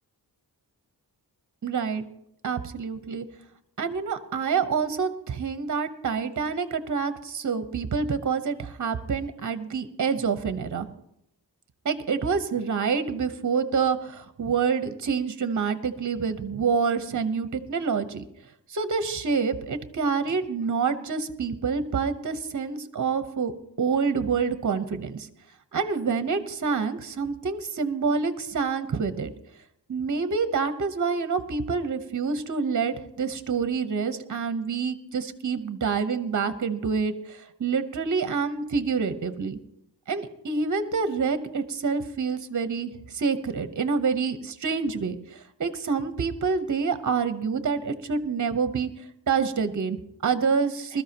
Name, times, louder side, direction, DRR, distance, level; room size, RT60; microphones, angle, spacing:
voice 1, 1.6-2.0 2.4-3.3 3.8-10.9 11.8-18.2 18.7-23.5 23.8-25.3 25.7-29.3 29.9-39.6 40.1-48.9 49.3-51.0, right 5 dB, 45° right, 10 dB, 1.0 m, -27 dB
21.0 x 13.0 x 2.9 m, 0.77 s
wide cardioid pair, 90°, 41 cm